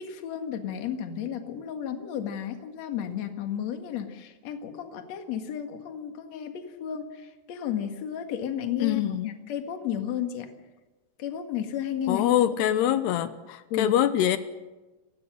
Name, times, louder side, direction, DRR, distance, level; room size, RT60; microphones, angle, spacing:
voice 1, 0.0-9.0 9.5-10.5 11.2-12.2 13.7-13.9, left 9 dB, 50° left, 2.5 m, -33 dB
voice 2, 8.8-9.3 12.1-14.4, left 11 dB, 85° left, 2.9 m, -24 dB
30.0 x 16.0 x 6.4 m
omnidirectional pair, 4.7 m